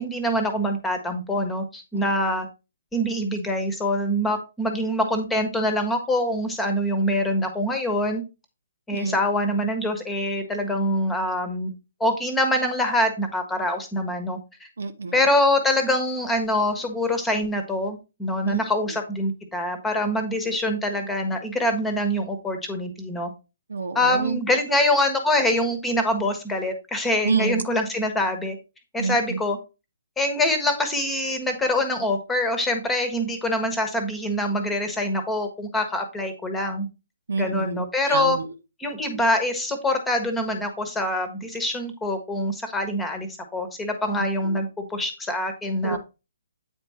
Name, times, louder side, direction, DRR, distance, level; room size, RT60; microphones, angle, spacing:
voice 1, 0.0-2.5 2.9-8.2 8.9-11.7 12.0-14.4 15.1-23.3 23.9-28.6 28.9-29.6 30.2-36.9 37.4-38.4 38.8-46.0, left 1 dB, 5° left, 1.3 m, -24 dB
voice 2, 14.8-15.2 18.4-18.6 23.7-24.4 27.2-27.6 29.0-29.4 37.3-38.5 44.4-44.6 45.8-46.0, right 4 dB, 60° right, 0.9 m, -28 dB
8.8 x 4.5 x 4.2 m
figure-of-eight pair, 130°, 0 cm